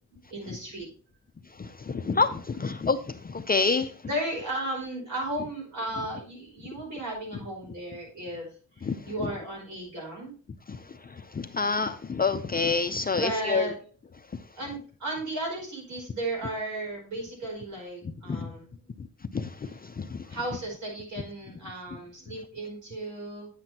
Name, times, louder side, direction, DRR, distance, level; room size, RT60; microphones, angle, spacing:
voice 1, 0.3-0.9 1.9-2.1 4.0-8.5 8.7-10.3 10.8-10.9 13.1-13.8 14.6-18.7 19.6-19.7 20.2-23.5, right 1 dB, 60° right, -1 dB, 5.1 m, -35 dB
voice 2, 1.6-3.9 8.8-9.3 10.7-13.7 18.3-18.5 19.0-19.1 19.3-20.4, left 4 dB, 30° left, 8 dB, 0.4 m, -28 dB
9.8 x 7.7 x 2.8 m, 0.41 s
wide cardioid pair, 170°, 33 cm